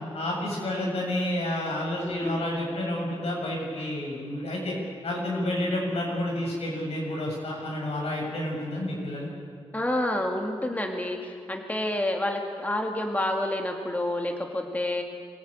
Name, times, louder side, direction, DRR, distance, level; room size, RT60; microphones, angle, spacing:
voice 1, 0.1-4.7 5.0-9.3, left 1 dB, 85° left, -2 dB, 7.6 m, -30 dB
voice 2, 2.0-2.4 9.7-15.0, left 1 dB, 15° left, 2 dB, 2.3 m, -29 dB
24.5 x 16.5 x 9.0 m, 2.1 s
cardioid pair, 75°, 10 cm